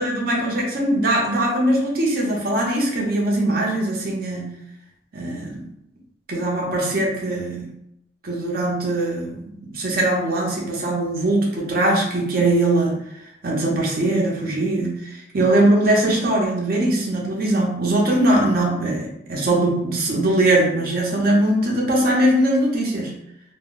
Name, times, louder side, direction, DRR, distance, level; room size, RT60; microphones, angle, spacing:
voice 1, 0.0-4.5 5.1-5.7 6.3-7.7 8.2-13.0 13.4-23.1, right 1 dB, 55° right, -2 dB, 0.7 m, -21 dB
2.1 x 2.0 x 3.6 m, 0.78 s
head